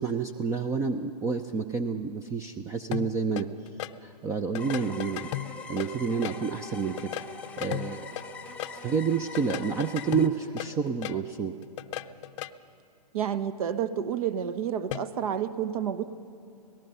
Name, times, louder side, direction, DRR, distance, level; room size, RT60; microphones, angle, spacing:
voice 1, 0.0-3.5 4.0-5.3 5.7-7.1 7.6-8.1 8.8-11.5, right 5 dB, 15° right, 9 dB, 0.5 m, -29 dB
sound 1, 2.9-3.9 4.6-6.4 6.8-8.7 9.4-11.2 11.6-12.5 14.9-15.1, left 14 dB, 45° left, 0.6 m, -36 dB
sound 2, 4.6-10.3, left 3 dB, 5° left, 1.1 m, -43 dB
voice 2, 13.1-16.0, right 9 dB, 55° right, 13 dB, 1.1 m, -30 dB
25.5 x 18.5 x 5.5 m, 2.6 s
hypercardioid pair, 130°, 21 cm